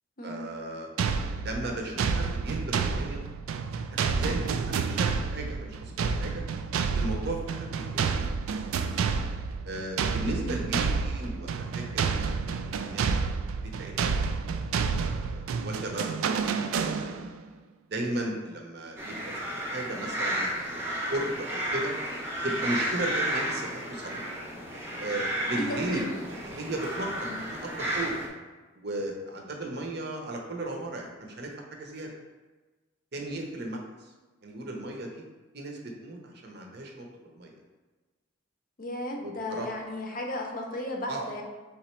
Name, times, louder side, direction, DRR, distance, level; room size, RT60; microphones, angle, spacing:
voice 1, 0.2-0.9 1.3-3.2 3.9-6.4 6.9-8.2 9.6-13.2 13.6-14.3 14.9-17.3 17.9-20.8 21.1-21.9 22.4-24.2 25.0-28.1 28.8-32.1 33.1-34.1 34.4-35.2 35.5-37.5 39.2-39.7 41.1-41.3, right 1 dB, 50° right, 1 dB, 0.7 m, -36 dB
sound 1, 1.0-17.4, right 5 dB, 90° right, 0.3 m, -29 dB
voice 2, 10.2-10.8 25.9-26.3 27.3-27.4 38.8-41.4, left 1 dB, 45° left, 1 dB, 0.6 m, -35 dB
Nesting Rooks, 19.0-28.3, right 1 dB, 10° right, 0.7 m, -32 dB
3.7 x 3.0 x 4.4 m, 1.3 s
head